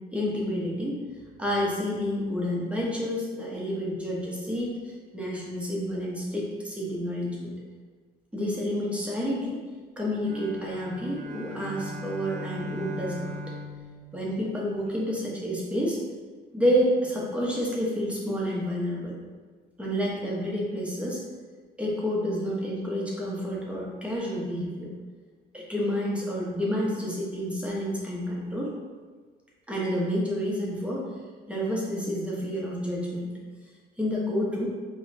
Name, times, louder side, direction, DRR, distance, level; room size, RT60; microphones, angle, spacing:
voice 1, 0.1-1.0 1.4-4.8 5.1-7.5 8.3-9.6 10.0-13.4 14.1-16.0 16.5-19.1 19.8-21.2 21.8-24.9 25.5-28.7 29.7-31.1 31.4-33.3 34.0-34.7, equal, 5° right, -5 dB, 1.0 m, -29 dB
sound 1, 10.2-14.9, right 1 dB, 50° right, 0.5 m, -40 dB
4.9 x 2.3 x 2.7 m, 1.4 s
cardioid pair, 110°, 17 cm